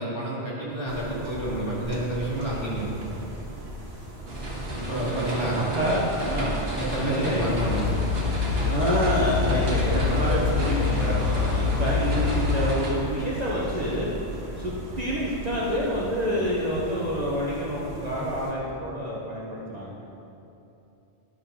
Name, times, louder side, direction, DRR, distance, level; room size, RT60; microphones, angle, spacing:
voice 1, 0.0-3.1 4.9-5.6 6.8-8.0, right 1 dB, 25° left, -8 dB, 2.3 m, -29 dB
sound 1, 0.9-18.5, right 1 dB, 90° right, 1.7 m, -36 dB
sound 2, 4.3-12.9, right 1 dB, 55° right, 1.7 m, -32 dB
voice 2, 4.7-5.1 5.6-6.6 7.0-7.6 8.7-14.1 14.6-19.9, equal, 35° right, -6 dB, 1.2 m, -28 dB
sound 3, 7.5-12.7, left 7 dB, 65° left, 0.8 m, -26 dB
11.5 x 5.3 x 5.5 m, 2.8 s
omnidirectional pair, 1.2 m